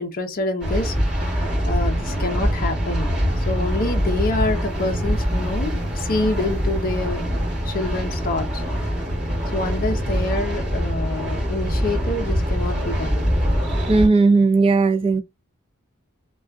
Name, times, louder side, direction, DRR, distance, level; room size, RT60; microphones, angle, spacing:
voice 1, 0.0-7.2 7.6-8.6 9.5-13.3, left 2 dB, 40° left, 0.5 m, -27 dB
sound 1, 0.6-14.1, equal, 5° right, 1.2 m, -23 dB
voice 2, 13.8-15.2, right 3 dB, 25° right, 0.3 m, -17 dB
2.4 x 2.2 x 2.2 m
head